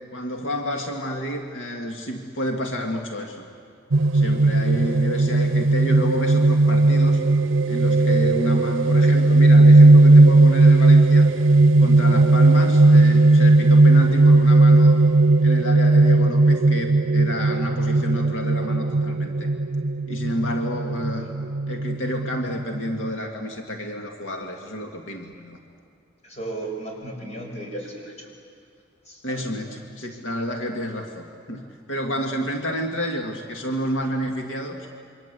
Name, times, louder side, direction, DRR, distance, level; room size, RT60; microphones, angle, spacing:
voice 1, 0.1-3.5 4.1-7.2 7.7-11.3 11.8-15.0 15.4-19.5 20.1-21.3 21.7-25.6 29.2-34.9, equal, 90° left, 3 dB, 2.0 m, -30 dB
sound 1, 3.9-23.1, right 2 dB, 85° right, 0.7 m, -16 dB
voice 2, 26.2-28.3 29.0-29.4 30.0-30.4 31.6-31.7, right 2 dB, 35° left, 0 dB, 5.8 m, -36 dB
27.5 x 24.5 x 8.2 m, 2.3 s
head